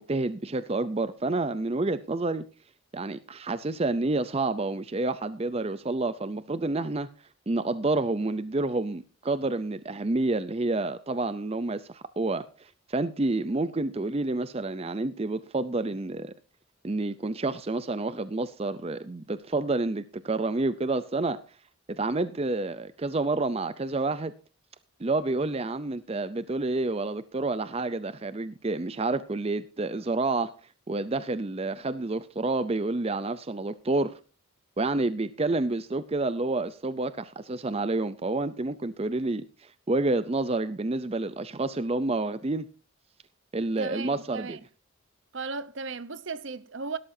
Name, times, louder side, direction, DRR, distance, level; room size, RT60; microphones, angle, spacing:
voice 1, 0.0-2.4 2.9-7.1 7.5-16.3 16.8-21.4 21.9-24.3 25.0-30.5 30.9-34.2 34.8-42.7 43.5-44.6, right 2 dB, 30° right, 0.5 m, -29 dB
voice 2, 43.8-44.6 45.3-47.0, right 4 dB, 60° right, 0.9 m, -36 dB
17.5 x 12.5 x 2.7 m
head